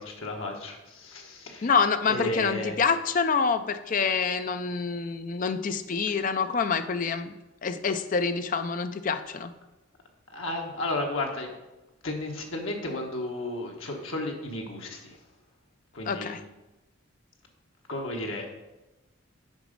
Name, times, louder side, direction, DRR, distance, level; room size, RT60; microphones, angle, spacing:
voice 1, 0.0-1.7 2.1-2.8 10.3-11.5 12.0-15.2 15.9-16.3 17.9-18.5, left 2 dB, 80° left, 1 dB, 1.3 m, -33 dB
voice 2, 1.6-7.3 7.6-9.5 16.1-16.4, left 5 dB, 40° left, 10 dB, 0.4 m, -27 dB
8.0 x 5.0 x 5.2 m, 1.0 s
head